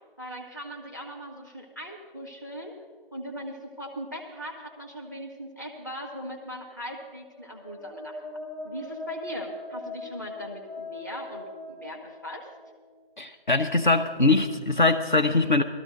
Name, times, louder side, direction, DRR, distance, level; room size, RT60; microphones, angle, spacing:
voice 1, 0.2-2.7 3.1-8.2 8.6-12.5, equal, 20° left, 1 dB, 0.9 m, -39 dB
sound 1, 7.2-12.9, left 2 dB, 35° left, 2.8 m, -40 dB
voice 2, 13.2-15.6, left 3 dB, 55° left, 5 dB, 0.6 m, -22 dB
18.0 x 13.5 x 3.8 m, 1.5 s
figure-of-eight pair, 165°, 29 cm